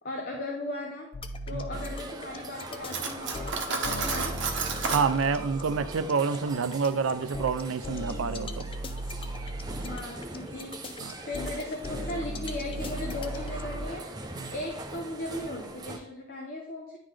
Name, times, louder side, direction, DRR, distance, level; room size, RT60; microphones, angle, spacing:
voice 1, 0.0-1.1 1.5-4.4 9.8-10.8 11.2-14.1 14.5-17.0, left 2 dB, 50° left, 2 dB, 0.7 m, -37 dB
sound 1, 1.1-13.8, equal, 25° left, 0.3 m, -37 dB
sound 2, 1.7-16.0, right 2 dB, 20° right, 0.6 m, -42 dB
Cutlery silverware, 2.9-5.1, right 4 dB, 60° right, 0.9 m, -31 dB
voice 2, 4.9-8.7 11.0-11.1 14.4-14.5, right 5 dB, 80° right, 12 dB, 0.4 m, -28 dB
9.8 x 3.8 x 3.3 m, 0.86 s
head